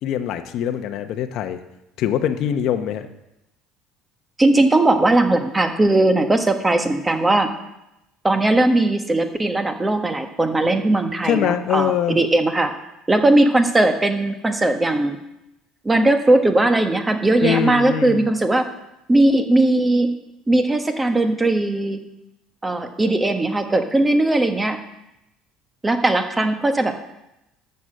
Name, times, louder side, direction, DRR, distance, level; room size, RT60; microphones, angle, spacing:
voice 1, 0.0-1.6 2.0-3.1 11.2-12.2 17.4-18.3, left 10 dB, 60° left, 7 dB, 0.9 m, -23 dB
voice 2, 4.4-7.5 8.2-12.7 13.1-15.2 15.8-18.7 19.1-20.2 20.5-22.0 22.6-24.8 25.8-26.9, right 2 dB, 15° right, 7 dB, 1.2 m, -18 dB
11.0 x 6.8 x 7.6 m, 0.90 s
cardioid pair, 120°, 0 cm